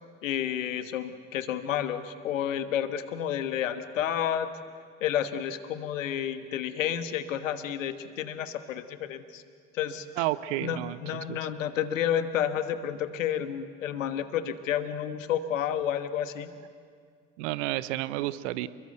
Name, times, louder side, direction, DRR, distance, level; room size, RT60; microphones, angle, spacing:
voice 1, 0.2-4.5 5.0-9.4 9.7-10.0 10.6-16.5, left 9 dB, 75° left, 11 dB, 1.4 m, -30 dB
voice 2, 10.2-11.0 11.3-11.4 17.4-18.7, right 16 dB, 65° right, 16 dB, 1.0 m, -30 dB
29.0 x 22.0 x 8.0 m, 2.1 s
figure-of-eight pair, 55°, 39 cm